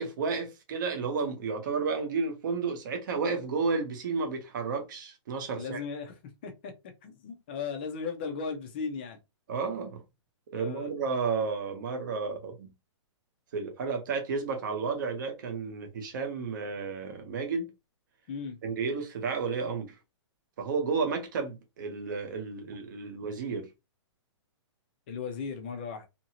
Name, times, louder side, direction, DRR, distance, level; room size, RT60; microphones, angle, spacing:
voice 1, 0.0-5.8 9.5-10.0 10.5-12.7 13.5-17.7 18.6-20.0 20.6-23.7, right 4 dB, 40° right, 0.8 m, -32 dB
voice 2, 5.5-6.1 6.4-9.2 10.5-10.9 18.3-18.6 25.1-26.1, left 5 dB, 20° left, 0.4 m, -37 dB
2.8 x 2.6 x 2.8 m
hypercardioid pair, 175°, 16 cm